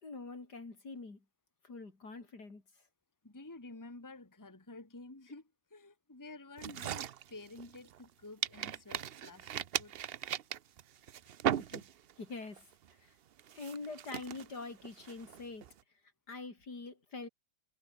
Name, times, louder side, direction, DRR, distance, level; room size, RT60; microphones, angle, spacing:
voice 1, 0.0-1.2 1.6-2.6 11.6-11.8 12.2-12.7 13.0-13.2 13.5-15.7 16.3-17.3, left 3 dB, 75° left, 4.6 m, -45 dB
voice 2, 3.2-10.0, left 2 dB, 10° left, 1.7 m, -51 dB
sound 1, 6.6-8.1 8.4-12.2 12.6-12.9 13.4-15.7, right 10 dB, 65° right, 0.6 m, -38 dB
omnidirectional pair, 1.8 m